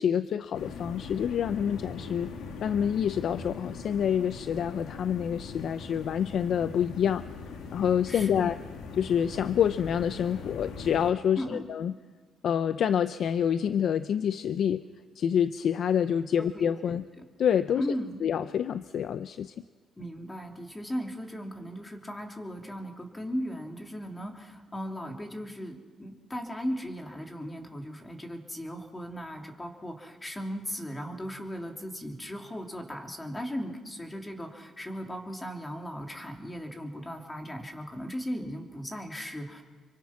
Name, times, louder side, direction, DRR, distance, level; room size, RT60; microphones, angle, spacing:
voice 1, 0.0-2.3 2.6-7.2 7.7-8.6 8.9-11.9 12.4-14.8 15.2-17.0 17.4-17.8 18.2-19.5, left 8 dB, 65° left, 12 dB, 0.6 m, -27 dB
sound 1, 0.5-11.1, left 4 dB, 85° left, 2.5 m, -41 dB
voice 2, 8.1-8.5 11.4-11.6 16.4-17.2 17.7-18.2 20.0-39.6, equal, 15° left, 2 dB, 3.2 m, -37 dB
26.5 x 23.5 x 6.0 m, 1.5 s
cardioid pair, 90°, 0 cm